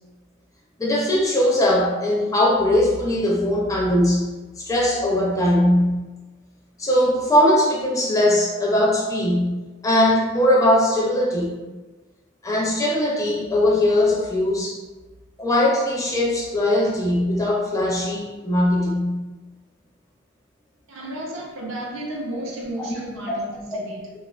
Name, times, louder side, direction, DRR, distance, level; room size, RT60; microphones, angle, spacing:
voice 1, 0.8-4.3 4.6-6.0 6.8-11.5 12.4-14.8 15.4-19.3 23.3-23.4, left 1 dB, 15° left, -3 dB, 0.4 m, -20 dB
voice 2, 20.9-24.1, right 1 dB, 70° right, -3 dB, 0.6 m, -33 dB
2.3 x 2.3 x 2.3 m, 1.2 s
head